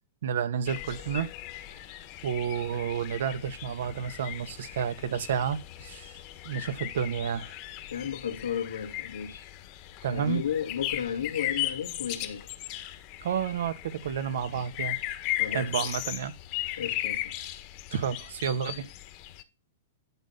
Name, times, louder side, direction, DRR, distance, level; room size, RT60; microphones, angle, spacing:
voice 1, 0.2-1.3 2.2-6.1 6.4-7.5 10.0-10.4 13.2-15.0 15.5-16.3 17.9-18.9, right 8 dB, 70° right, 1.6 m, -30 dB
sound 1, 0.7-19.4, left 15 dB, 45° left, 1.5 m, -37 dB
voice 2, 7.9-9.4 10.1-12.5 15.4-15.9 16.8-17.3, left 8 dB, 90° left, 2.2 m, -33 dB
11.5 x 4.0 x 5.8 m
hypercardioid pair, 120°, 0 cm